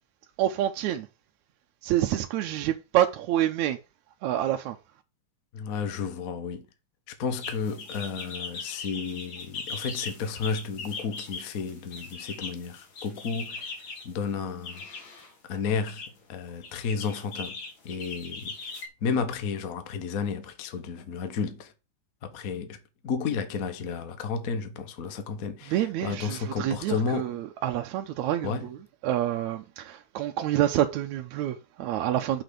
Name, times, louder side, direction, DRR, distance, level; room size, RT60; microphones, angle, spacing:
voice 1, 0.4-1.1 1.8-3.8 4.2-4.8 25.7-32.4, right 12 dB, 75° right, 2.0 m, -27 dB
voice 2, 5.5-6.6 7.2-13.6 14.0-14.8 15.5-16.0 16.3-17.6 17.8-18.5 19.0-21.7 22.2-22.8 23.0-25.8 26.0-27.3 28.4-28.7, left 5 dB, 75° left, 0.8 m, -32 dB
sound 1, 7.4-14.1 14.6-15.3 15.7-16.1 16.6-18.9, left 4 dB, 45° left, 1.9 m, -39 dB
6.0 x 6.0 x 6.7 m
omnidirectional pair, 3.5 m